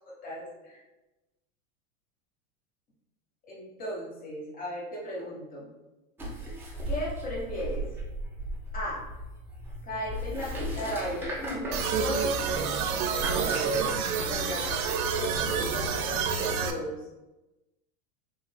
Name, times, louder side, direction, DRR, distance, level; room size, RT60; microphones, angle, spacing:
voice 1, 0.2-0.8 3.5-5.7 6.9-7.8 8.7-9.0 9.8-12.5 13.3-13.9 14.2-16.9, equal, 20° left, -5 dB, 1.1 m, -35 dB
sound 1, 6.2-16.2, equal, 5° right, 0.3 m, -37 dB
sound 2, 11.7-16.7, right 6 dB, 80° right, 0.6 m, -28 dB
3.2 x 3.2 x 2.2 m, 1.0 s
hypercardioid pair, 110°, 42 cm